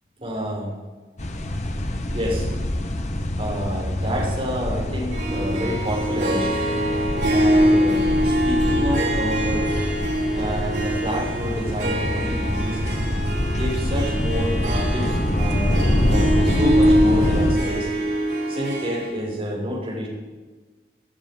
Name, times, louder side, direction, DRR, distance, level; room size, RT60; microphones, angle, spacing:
voice 1, 0.2-0.7 2.1-2.5 3.4-6.7 7.3-9.7 10.3-12.8 13.5-15.8 16.1-17.9 18.5-20.1, equal, 35° right, -4 dB, 6.6 m, -29 dB
sound 1, 1.2-17.5, left 1 dB, 40° left, 1.3 m, -25 dB
Harp, 5.1-19.1, equal, 70° right, 5.1 m, -23 dB
19.5 x 12.5 x 5.5 m, 1.3 s
head